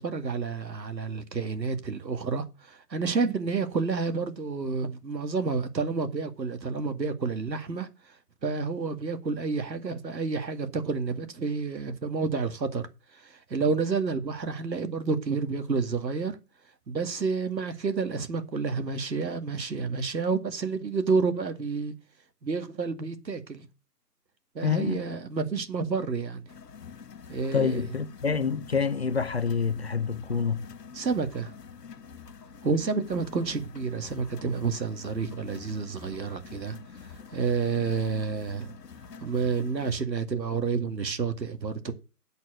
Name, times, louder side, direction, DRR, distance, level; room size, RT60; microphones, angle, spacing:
voice 1, 0.0-7.9 8.4-12.9 13.2-16.3 16.9-21.9 22.4-23.7 24.5-26.4 27.3-27.8 30.9-31.5 32.6-36.8 37.3-38.7 39.2-41.9, right 4 dB, 90° right, 2.2 m, -29 dB
voice 2, 24.6-25.0 27.5-30.6, left 5 dB, 40° left, 0.6 m, -27 dB
sound 1, 26.5-40.0, left 6 dB, 70° left, 1.4 m, -47 dB
8.1 x 6.9 x 6.3 m
hypercardioid pair, 165°, 49 cm